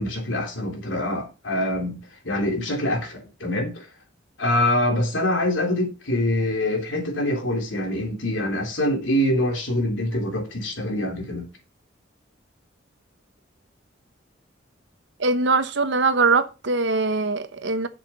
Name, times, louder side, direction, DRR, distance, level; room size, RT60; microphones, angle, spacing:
voice 1, 0.0-3.9 4.4-11.5, left 1 dB, 70° left, 3.4 m, -25 dB
voice 2, 15.2-17.9, right 3 dB, 65° right, 1.1 m, -22 dB
7.4 x 7.2 x 5.7 m
head